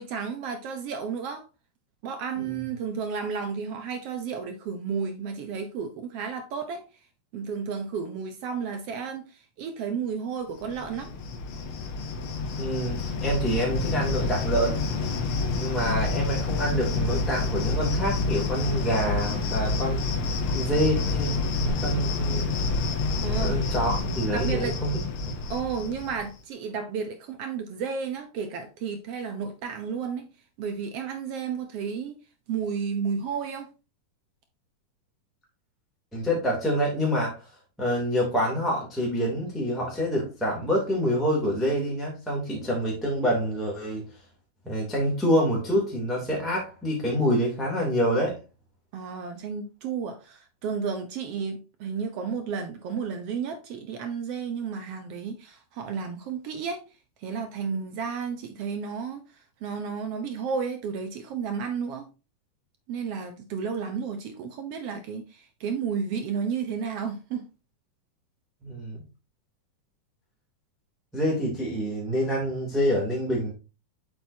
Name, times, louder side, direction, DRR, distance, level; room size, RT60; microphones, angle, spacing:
voice 1, 0.0-1.4 2.0-6.8 7.3-11.1 23.2-23.5 24.3-24.8 25.5-30.3 30.6-32.2 32.5-33.7 48.9-56.8 57.2-59.2 59.6-62.1 62.9-67.4, right 6 dB, 75° right, 1.4 m, -32 dB
Cricket, 10.6-26.3, left 3 dB, 75° left, 1.2 m, -28 dB
voice 2, 12.6-14.8 15.6-20.1 20.5-22.5 23.4-25.3 36.1-37.4 37.8-44.0 44.6-48.4 68.6-69.0 71.1-73.5, equal, ahead, 2.1 m, -27 dB
7.9 x 6.0 x 2.8 m
omnidirectional pair, 3.7 m